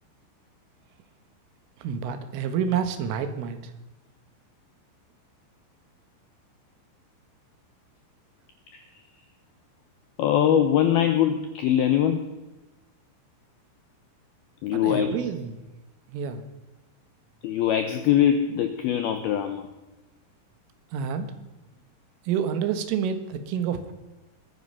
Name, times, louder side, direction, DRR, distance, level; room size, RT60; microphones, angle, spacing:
voice 1, 1.8-3.7 14.7-15.6 16.1-16.4 20.9-21.3 22.3-23.9, right 7 dB, 90° right, 9 dB, 4.0 m, -28 dB
voice 2, 10.2-12.3 14.6-15.3 17.4-19.7, left 10 dB, 90° left, 7 dB, 2.2 m, -22 dB
22.0 x 9.7 x 5.6 m, 1.1 s
omnidirectional pair, 5.6 m